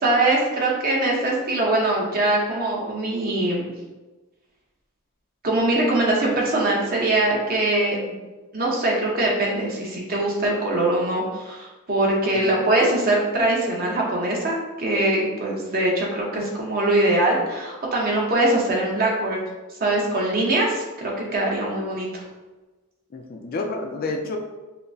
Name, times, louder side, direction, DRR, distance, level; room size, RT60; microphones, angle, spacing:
voice 1, 0.0-3.7 5.4-8.1 8.5-19.4 19.8-22.2, right 2 dB, 40° right, -2 dB, 0.8 m, -22 dB
voice 2, 23.1-24.4, left 3 dB, 40° left, 3 dB, 0.4 m, -30 dB
5.7 x 2.1 x 2.6 m, 1.2 s
head